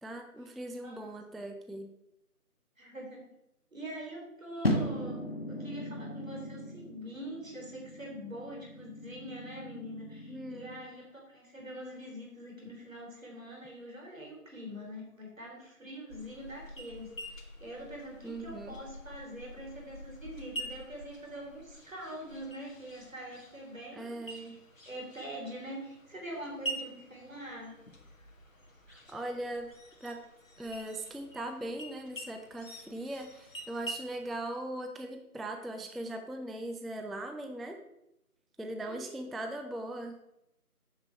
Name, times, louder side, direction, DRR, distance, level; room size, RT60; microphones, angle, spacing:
voice 1, 0.0-1.9 10.3-10.7 18.2-18.7 23.9-24.6 28.9-29.7 30.0-30.2 30.6-37.8 38.6-40.1, right 1 dB, ahead, 5 dB, 0.4 m, -39 dB
voice 2, 2.8-3.2 3.7-24.6 24.9-27.8 38.9-39.2, equal, 60° right, -1 dB, 3.5 m, -44 dB
sound 1, 4.6-10.9, equal, 40° left, 1.0 m, -37 dB
sound 2, 16.1-34.4, right 1 dB, 60° left, 1.5 m, -46 dB
8.7 x 5.5 x 5.7 m, 0.86 s
figure-of-eight pair, 180°, 45 cm